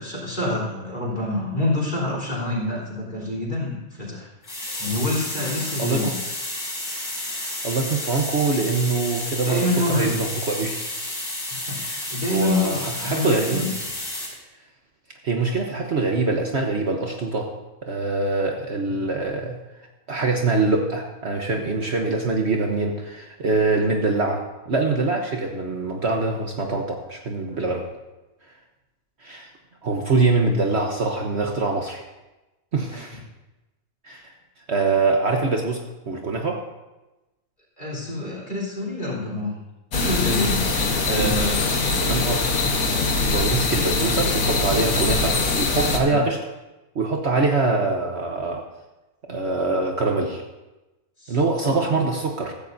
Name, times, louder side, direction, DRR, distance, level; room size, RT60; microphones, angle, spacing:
voice 1, 0.0-4.3 4.8-6.1 9.4-10.1 11.7-13.8 18.9-19.0 27.5-27.7 37.8-39.6 39.9-40.6 41.0-41.9 46.0-46.2 51.2-51.4 51.6-52.0, left 2 dB, 35° left, -4 dB, 3.9 m, -27 dB
sound 1, 4.4-14.3, left 1 dB, 90° left, 4.8 m, -31 dB
voice 2, 5.8-6.2 7.3-10.8 11.8-12.0 12.3-13.6 15.2-17.5 17.8-19.6 20.1-27.9 29.2-29.5 29.8-32.0 32.7-33.2 34.0-34.3 34.7-36.6 41.1-41.5 42.0-42.5 43.3-46.4 46.9-48.6 49.3-50.4 51.3-52.5, right 3 dB, 50° right, 1 dB, 1.3 m, -24 dB
sound 2, 39.9-46.0, left 3 dB, 70° left, 1.7 m, -22 dB
15.5 x 14.0 x 2.7 m, 1.0 s
omnidirectional pair, 1.5 m